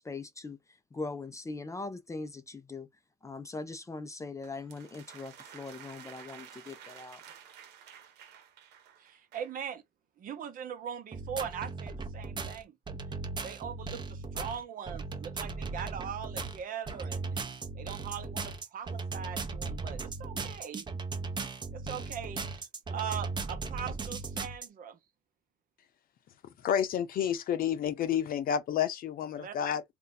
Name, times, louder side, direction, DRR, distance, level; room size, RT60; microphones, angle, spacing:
voice 1, 0.0-2.9 3.2-7.2, left 3 dB, 20° left, 0.4 m, -41 dB
sound 1, 4.4-9.6, right 8 dB, 80° right, 0.9 m, -52 dB
voice 2, 9.0-9.8 10.2-12.7 13.4-17.4 17.7-20.9 21.7-25.0 29.4-29.5, right 8 dB, 55° right, 0.9 m, -40 dB
sound 2, 11.1-24.7, right 4 dB, 25° right, 0.7 m, -37 dB
voice 3, 26.4-29.8, left 9 dB, 60° left, 0.7 m, -30 dB
2.7 x 2.2 x 3.9 m
cardioid pair, 110°, 17 cm